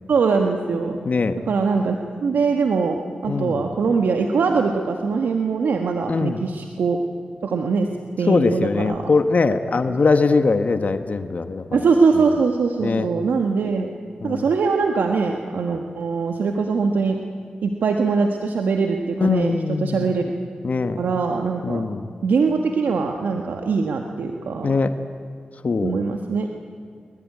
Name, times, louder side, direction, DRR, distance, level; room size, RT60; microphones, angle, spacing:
voice 1, 0.1-1.0 1.5-7.0 7.4-7.9 8.2-9.1 11.7-13.9 14.2-17.2 17.6-20.3 21.0-21.9 22.2-24.7 25.8-26.5, right 4 dB, 85° right, 3 dB, 1.5 m, -22 dB
voice 2, 1.0-1.4 3.3-3.6 6.1-6.4 8.3-11.8 12.8-13.1 14.2-14.4 19.2-20.1 20.6-21.0 21.6-22.1 24.6-25.0 25.6-26.0, left 4 dB, 55° left, 8 dB, 1.3 m, -21 dB
24.0 x 22.5 x 9.8 m, 2.2 s
cardioid pair, 55°, 3 cm